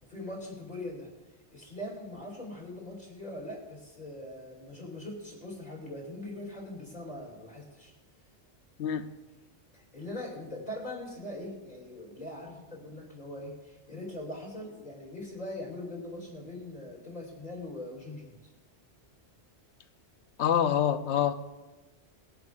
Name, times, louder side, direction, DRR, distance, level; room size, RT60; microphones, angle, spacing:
voice 1, 0.1-1.1 1.5-7.9 9.7-18.4, left 1 dB, 45° left, 3.1 m, -41 dB
voice 2, 20.4-21.3, left 9 dB, 75° left, 1.0 m, -26 dB
20.0 x 10.5 x 2.5 m
omnidirectional pair, 1.2 m